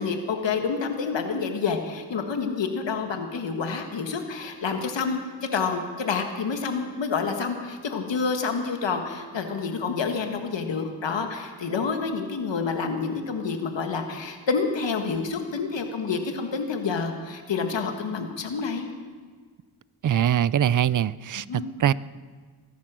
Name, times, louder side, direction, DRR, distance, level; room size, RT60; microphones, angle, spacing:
voice 1, 0.0-5.2 5.5-18.9 21.5-21.7, left 5 dB, 65° left, 5 dB, 1.8 m, -28 dB
voice 2, 20.0-21.9, right 10 dB, 45° right, 20 dB, 0.5 m, -23 dB
21.0 x 10.5 x 6.2 m, 1.5 s
cardioid pair, 60°, 46 cm